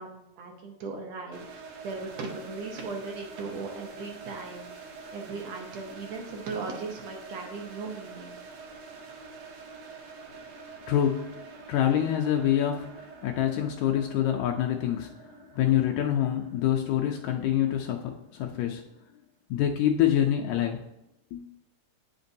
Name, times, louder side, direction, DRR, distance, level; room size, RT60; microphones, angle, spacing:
voice 1, 0.0-8.4, right 4 dB, 70° right, 1 dB, 2.0 m, -38 dB
sound 1, 1.3-18.2, right 4 dB, 85° right, 2.3 m, -46 dB
voice 2, 10.9-18.8 19.5-20.8 21.3-21.4, left 10 dB, 80° left, 1 dB, 1.8 m, -26 dB
9.3 x 5.1 x 2.7 m, 0.86 s
omnidirectional pair, 3.3 m